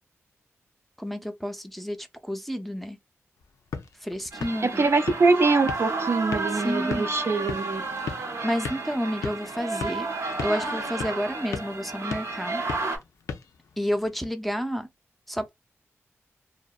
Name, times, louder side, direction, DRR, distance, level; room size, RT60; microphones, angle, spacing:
voice 1, 1.0-3.0 4.0-4.9 6.5-7.1 8.4-10.1 10.4-12.6 13.8-14.9 15.3-15.5, equal, 5° left, 0.5 m, -30 dB
sound 1, 3.4-14.2, left 6 dB, 90° left, 0.4 m, -39 dB
sound 2, 4.3-13.0, right 3 dB, 85° right, 0.7 m, -32 dB
voice 2, 4.6-7.8, right 3 dB, 55° right, 0.4 m, -23 dB
2.6 x 2.1 x 2.3 m
cardioid pair, 60°, 5 cm